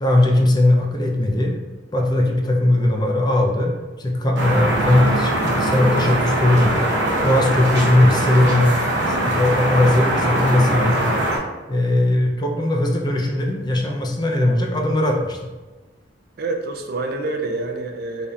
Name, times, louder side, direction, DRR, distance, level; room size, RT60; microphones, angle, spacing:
voice 1, 0.0-1.5 1.9-6.9 7.2-8.7 9.1-11.0 11.7-15.4, left 1 dB, 25° left, 1 dB, 0.5 m, -19 dB
sound 1, 4.4-11.4, right 1 dB, 75° right, 0.9 m, -21 dB
voice 2, 10.7-11.3 16.4-18.3, right 2 dB, 55° right, 4 dB, 0.4 m, -27 dB
4.0 x 3.4 x 2.4 m, 1.2 s
head